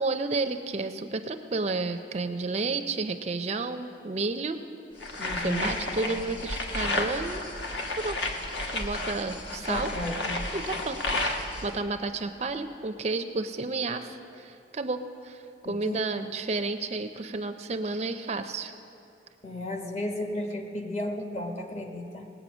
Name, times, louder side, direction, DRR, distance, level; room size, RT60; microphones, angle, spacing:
voice 1, 0.0-4.6 5.4-7.4 7.9-8.2 8.7-9.9 10.5-18.7, right 3 dB, 35° right, 8 dB, 0.4 m, -31 dB
sound 1, 5.0-11.7, left 2 dB, 70° left, 1.2 m, -32 dB
voice 2, 5.2-5.7 9.7-10.4 15.6-16.0 19.4-22.3, left 1 dB, 35° left, 2 dB, 1.2 m, -34 dB
19.0 x 8.1 x 6.1 m, 2.7 s
head